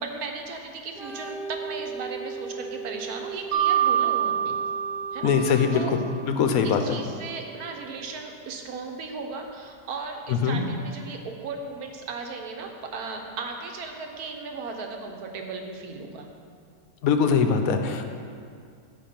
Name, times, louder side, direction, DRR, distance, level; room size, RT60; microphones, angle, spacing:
voice 1, 0.0-4.6 5.1-6.0 6.6-16.3, right 4 dB, 65° right, 3 dB, 1.3 m, -36 dB
Organ, 0.9-8.4, right 4 dB, 85° right, 1.7 m, -40 dB
Mallet percussion, 3.5-6.3, right 9 dB, 45° right, 1.2 m, -26 dB
voice 2, 5.2-5.8 6.4-7.0 10.3-10.6 17.0-18.1, left 6 dB, 65° left, 6 dB, 1.0 m, -22 dB
9.9 x 5.1 x 5.8 m, 2.3 s
omnidirectional pair, 1.8 m